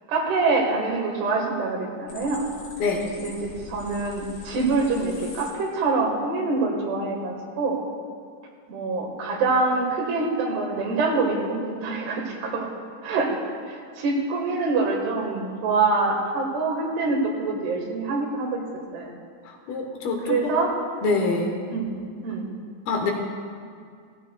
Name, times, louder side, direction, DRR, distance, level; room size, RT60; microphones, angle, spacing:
voice 1, 0.1-2.5 3.2-3.4 3.7-7.9 8.7-12.7 13.0-13.4 13.7-18.6 18.9-19.1 20.3-20.7 21.7-21.9 22.2-22.5, right 3 dB, 80° right, 1 dB, 3.4 m, -25 dB
sound 1, 2.1-5.5, left 3 dB, 90° left, 4.1 m, -43 dB
voice 2, 19.5-20.6 21.0-21.5 22.9-23.1, left 3 dB, 75° left, 2 dB, 2.7 m, -25 dB
16.0 x 14.5 x 2.2 m, 2.1 s
omnidirectional pair, 4.7 m